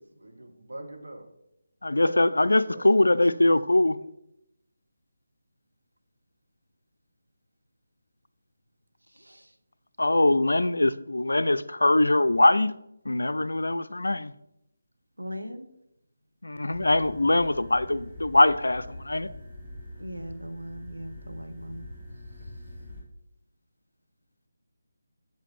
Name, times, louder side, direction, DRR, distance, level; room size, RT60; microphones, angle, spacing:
voice 1, 0.1-1.2 1.9-3.4, right 1 dB, 75° right, 1.6 m, -43 dB
voice 2, 1.8-4.0 10.0-12.7 13.1-14.3 16.4-19.3, left 2 dB, 75° left, 0.4 m, -22 dB
voice 3, 9.1-9.5 15.2-15.7 20.0-21.9, equal, 90° right, 0.9 m, -39 dB
sound 1, 16.7-23.0, left 1 dB, 20° right, 2.4 m, -44 dB
7.6 x 7.3 x 3.6 m
figure-of-eight pair, 155°, 0 cm